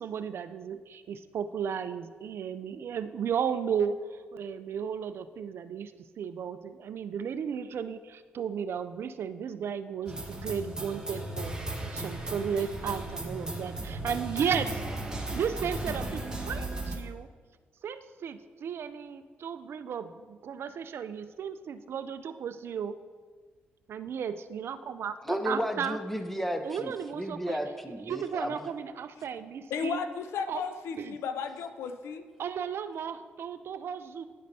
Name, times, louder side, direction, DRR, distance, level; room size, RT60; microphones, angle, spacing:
voice 1, 0.0-5.9 6.2-11.5 11.9-14.8 15.3-17.3 17.8-23.0 23.9-26.0 26.6-27.6 28.0-30.0 30.5-30.6 31.0-31.1 32.4-34.2, right 7 dB, 65° right, 12 dB, 0.3 m, -34 dB
sound 1, 10.1-17.0, right 2 dB, 15° right, 1.4 m, -36 dB
voice 2, 25.2-28.5, equal, 5° left, 7 dB, 0.8 m, -33 dB
voice 3, 29.7-32.3, left 6 dB, 80° left, 9 dB, 0.4 m, -34 dB
10.0 x 5.1 x 2.7 m, 1.5 s
supercardioid pair, 55°, 4 cm